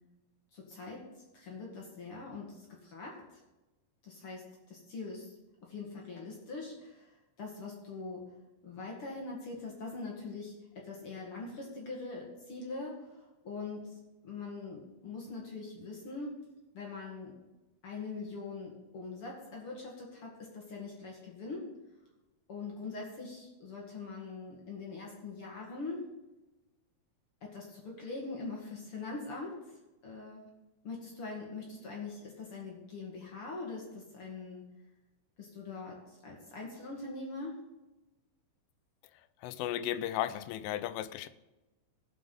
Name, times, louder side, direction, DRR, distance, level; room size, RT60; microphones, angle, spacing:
voice 1, 0.5-1.0 1.3-3.2 4.0-5.3 5.6-7.1 7.4-8.3 8.6-13.9 14.2-16.4 16.7-17.4 17.8-21.7 22.5-26.1 27.4-29.6 30.0-30.5 30.8-34.6 35.4-37.6, left 3 dB, 50° left, -2 dB, 1.8 m, -42 dB
voice 2, 39.4-41.3, left 12 dB, 90° left, 14 dB, 3.1 m, -35 dB
17.5 x 5.8 x 5.4 m, 1.0 s
omnidirectional pair, 5.5 m